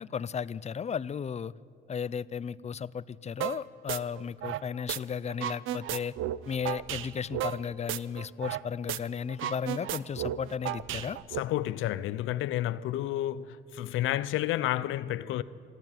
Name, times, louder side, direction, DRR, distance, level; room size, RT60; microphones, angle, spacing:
voice 1, 0.0-1.5 1.9-6.1 6.5-11.2, left 7 dB, 35° left, 0.5 m, -34 dB
sound 1, 3.4-3.6 3.9-5.0 5.3-8.6 8.9-9.0 9.3-11.4, right 12 dB, 85° right, 0.6 m, -34 dB
voice 2, 11.3-15.4, left 14 dB, 90° left, 0.6 m, -30 dB
27.5 x 12.0 x 9.1 m
cardioid pair, 90°, 20 cm